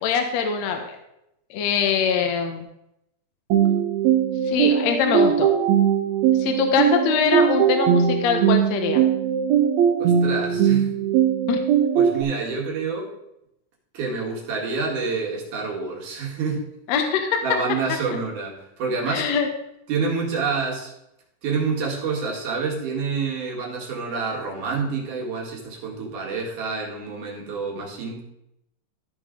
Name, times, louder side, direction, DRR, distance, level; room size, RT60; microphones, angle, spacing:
voice 1, 0.0-1.0 1.5-2.7 4.4-5.5 6.4-9.0 11.5-11.6 16.9-17.4 18.1-18.2 19.1-19.5, left 7 dB, 70° left, 4 dB, 1.8 m, -23 dB
sound 1, 3.5-12.2, right 9 dB, 85° right, 1.5 m, -20 dB
voice 2, 10.0-10.9 12.0-13.1 13.9-16.6 17.4-19.3 19.9-20.9 21.4-28.2, right 4 dB, 65° right, -1 dB, 3.3 m, -27 dB
14.0 x 5.4 x 3.7 m, 0.82 s
omnidirectional pair, 4.0 m